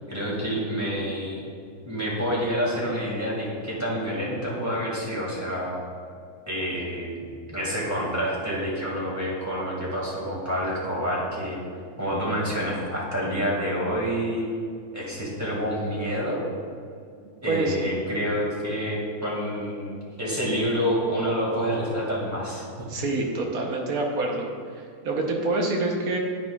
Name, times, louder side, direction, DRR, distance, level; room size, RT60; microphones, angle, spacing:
voice 1, 0.1-1.4 1.8-5.7 6.5-7.1 7.5-11.6 12.0-14.5 14.9-16.4 17.4-19.9 20.2-22.9, equal, 10° right, -5 dB, 2.0 m, -28 dB
voice 2, 22.9-24.5 24.7-26.2, right 2 dB, 75° right, 1 dB, 1.5 m, -26 dB
9.6 x 8.9 x 2.4 m, 2.3 s
omnidirectional pair, 1.6 m